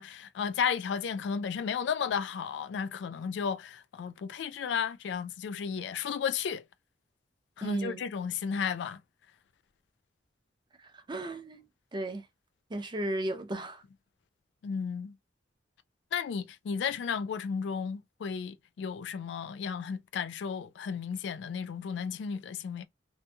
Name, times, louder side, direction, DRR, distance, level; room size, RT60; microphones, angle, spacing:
voice 1, 0.0-6.6 7.6-9.0 14.6-15.1 16.1-22.9, left 6 dB, 70° left, 0.3 m, -33 dB
voice 2, 7.6-8.0 11.1-11.6 11.9-12.2 12.7-13.8, right 1 dB, 25° right, 0.6 m, -34 dB
2.7 x 2.6 x 2.2 m
head